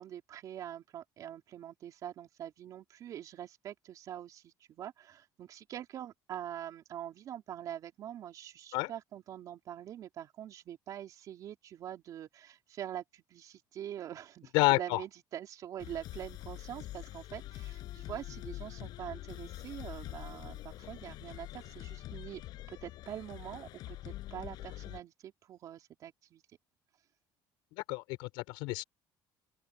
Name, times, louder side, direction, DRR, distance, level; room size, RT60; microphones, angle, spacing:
voice 1, 0.0-22.4 22.7-26.4, right 11 dB, 45° right, 3.6 m, -44 dB
voice 2, 14.5-15.0 27.9-28.8, left 23 dB, 85° left, 4.5 m, -29 dB
sound 1, 15.8-25.0, left 15 dB, 60° left, 6.2 m, -45 dB
open air
cardioid pair, 155°, 8 cm